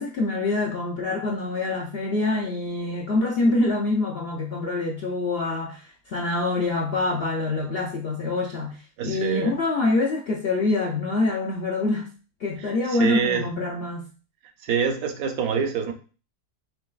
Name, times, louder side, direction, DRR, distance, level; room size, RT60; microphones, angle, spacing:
voice 1, 0.0-12.1 12.4-14.1, left 2 dB, 60° left, -1 dB, 0.6 m, -25 dB
voice 2, 9.0-9.6 12.6-13.5 14.6-15.9, right 6 dB, 75° right, 6 dB, 1.1 m, -26 dB
5.2 x 3.1 x 2.3 m, 0.36 s
omnidirectional pair, 1.6 m